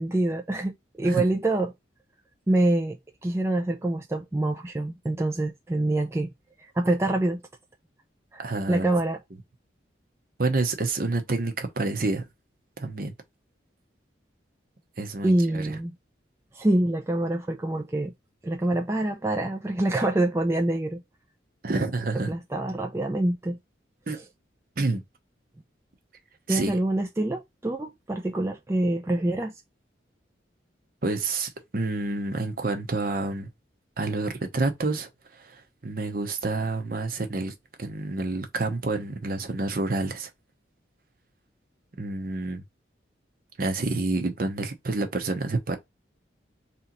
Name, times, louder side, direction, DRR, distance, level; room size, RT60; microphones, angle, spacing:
voice 1, 0.0-1.7 2.5-3.0 3.2-6.3 6.6-7.4 8.3-8.4 8.7-9.2 15.2-15.9 16.5-18.1 18.4-21.0 22.1-23.6 24.1-24.2 26.5-29.5, right 1 dB, 15° right, 0.4 m, -25 dB
voice 2, 8.4-8.9 10.4-12.3 12.8-13.1 15.0-15.8 21.6-22.3 24.1-24.2 24.8-25.0 26.5-26.8 31.0-33.5 34.0-40.3 42.0-42.6 43.6-45.8, right 2 dB, 50° right, 0.8 m, -28 dB
3.3 x 2.9 x 3.9 m
head